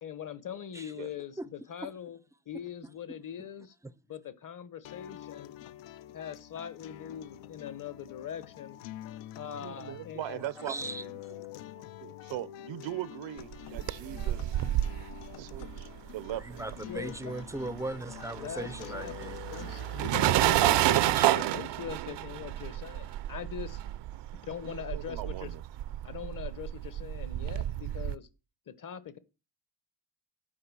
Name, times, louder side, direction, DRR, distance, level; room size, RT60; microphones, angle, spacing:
voice 1, 0.0-2.2 2.5-3.7 4.1-5.5 6.1-8.8 9.4-10.4 16.9-17.3 18.3-23.8 24.3-25.5 26.0-28.3 28.7-29.2, left 9 dB, 45° left, 1.0 m, -42 dB
sound 1, 4.8-20.9, left 13 dB, 75° left, 0.6 m, -47 dB
voice 2, 9.6-11.4 11.7-14.6 15.4-16.8 24.6-25.6, right 13 dB, 90° right, 0.8 m, -40 dB
voice 3, 10.6-11.0 16.4-19.6 21.1-21.3, right 2 dB, 5° right, 0.4 m, -38 dB
sound 2, 13.5-17.2 17.4-28.2, right 14 dB, 65° right, 0.6 m, -30 dB
8.6 x 4.9 x 6.1 m
cardioid pair, 110°, 45 cm